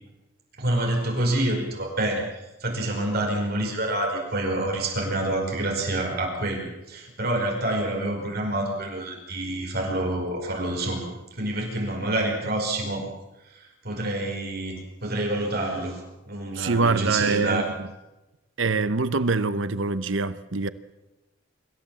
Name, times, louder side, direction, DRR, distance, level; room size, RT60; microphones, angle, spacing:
voice 1, 0.6-11.1 11.4-13.1 13.5-16.0 16.3-17.7, right 1 dB, 50° right, 5.1 m, -27 dB
voice 2, 16.5-17.6 18.6-20.7, right 4 dB, 70° right, 0.9 m, -24 dB
26.0 x 14.5 x 7.5 m
head